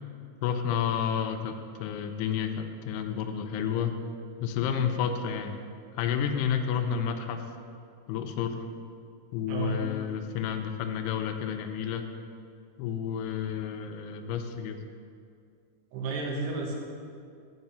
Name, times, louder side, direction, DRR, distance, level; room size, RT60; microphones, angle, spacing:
voice 1, 0.4-3.9 4.4-5.6 5.9-7.4 8.1-8.7 9.3-12.0 12.8-14.8, left 8 dB, 85° left, 6 dB, 2.6 m, -30 dB
voice 2, 9.5-9.8 15.9-16.8, right 3 dB, 90° right, 0 dB, 3.3 m, -31 dB
10.5 x 5.1 x 5.5 m, 2.3 s
omnidirectional pair, 4.6 m